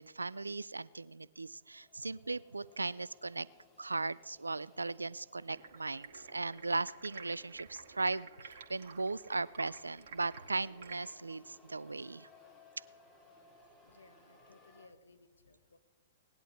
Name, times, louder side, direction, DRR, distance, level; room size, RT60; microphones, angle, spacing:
voice 1, 0.0-3.5 3.8-12.3, right 3 dB, 85° right, 20 dB, 0.3 m, -38 dB
sound 1, 1.4-14.9, left 3 dB, 15° left, 2.8 m, -64 dB
Stream, 5.5-11.0, right 6 dB, 55° right, 1.9 m, -52 dB
voice 2, 13.8-15.8, left 3 dB, 75° left, 9 dB, 1.0 m, -61 dB
18.5 x 11.0 x 3.1 m, 1.2 s
figure-of-eight pair, 110°, 0 cm